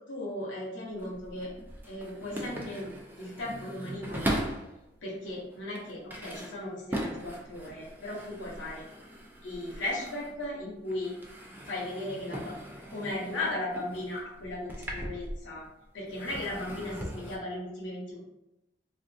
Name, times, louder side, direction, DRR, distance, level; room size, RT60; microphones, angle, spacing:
voice 1, 0.1-1.5 1.9-2.9 3.2-4.4 5.0-8.8 9.4-11.2 11.7-12.6 12.9-15.6 15.9-18.2, left 1 dB, 75° left, -4 dB, 0.8 m, -36 dB
sound 1, 0.8-4.8 5.3-10.6 10.9-15.7 16.1-17.4, equal, 10° right, 0.4 m, -39 dB
3.4 x 2.4 x 2.6 m, 0.88 s
head